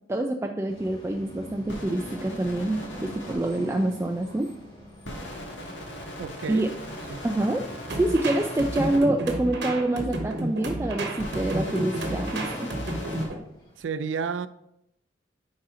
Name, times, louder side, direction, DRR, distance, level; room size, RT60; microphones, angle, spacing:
voice 1, 0.1-4.5 6.5-6.7 7.2-7.6 8.0-12.7, right 1 dB, 15° right, 3 dB, 0.3 m, -26 dB
sound 1, 0.7-13.8, right 1 dB, 25° left, 2.5 m, -46 dB
sound 2, 1.7-3.4 5.0-9.0 11.1-13.3, left 1 dB, 70° left, 1.9 m, -38 dB
voice 2, 6.2-6.7 7.1-7.2 13.8-14.5, right 5 dB, 85° right, 13 dB, 0.4 m, -31 dB
sound 3, 7.9-13.4, right 1 dB, 65° right, 1.2 m, -31 dB
9.6 x 4.2 x 3.8 m, 0.80 s
head